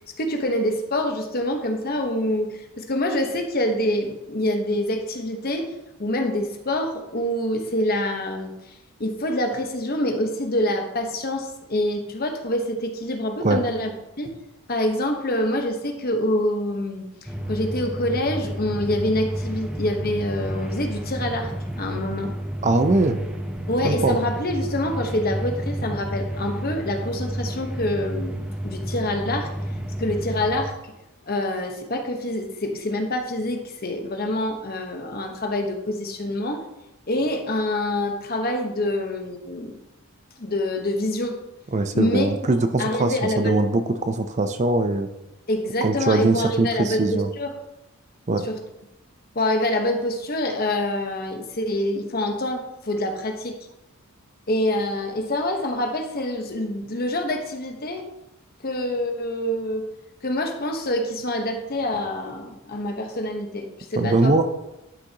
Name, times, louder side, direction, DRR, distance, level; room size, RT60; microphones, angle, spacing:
voice 1, 0.2-5.7 6.0-8.5 9.0-13.9 14.2-14.3 14.7-17.0 17.5-22.3 23.7-28.4 28.6-29.5 30.0-30.9 31.3-36.6 37.1-39.8 40.4-41.4 41.9-42.3 42.8-43.7 45.5-47.5 48.4-48.6 49.3-53.6 54.5-58.1 58.6-59.9 60.2-64.3, left 1 dB, 40° left, 4 dB, 1.0 m, -26 dB
sound 1, 17.3-30.7, equal, 5° right, 0.8 m, -31 dB
voice 2, 22.6-23.2 23.8-24.2 41.7-45.1 45.8-47.3 48.3-48.5 64.0-64.5, right 2 dB, 30° right, 9 dB, 0.5 m, -21 dB
11.5 x 6.3 x 2.9 m, 0.94 s
head